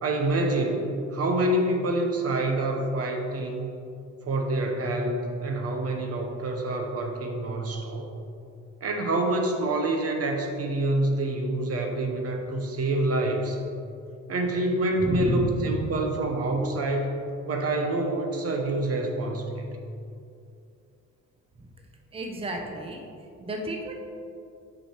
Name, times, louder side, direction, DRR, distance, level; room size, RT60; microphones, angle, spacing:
voice 1, 0.0-3.7 4.3-8.1 8.8-13.6 14.3-17.1 17.5-19.7, right 2 dB, 50° right, 2 dB, 0.9 m, -27 dB
voice 2, 15.0-15.7 21.6-21.7 22.1-23.1 23.4-23.9, right 1 dB, 20° right, 1 dB, 0.8 m, -30 dB
6.0 x 4.8 x 4.4 m, 2.5 s
cardioid pair, 90°, 30 cm